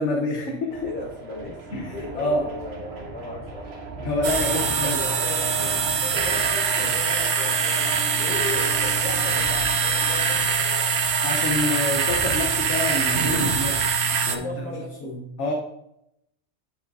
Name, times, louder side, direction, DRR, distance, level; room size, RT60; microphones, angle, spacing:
voice 1, 0.0-0.9 1.7-2.5 4.0-5.0 11.2-13.8 14.3-15.5, left 2 dB, 70° left, 1 dB, 1.2 m, -27 dB
sound 1, 0.7-13.9, right 3 dB, 60° right, 1.4 m, -37 dB
voice 2, 0.8-3.8 4.5-10.9 14.0-15.1, left 1 dB, 45° left, -4 dB, 3.2 m, -36 dB
sound 2, 4.2-14.4, right 6 dB, 90° right, 1.2 m, -23 dB
9.5 x 6.2 x 2.6 m, 0.80 s
omnidirectional pair, 1.3 m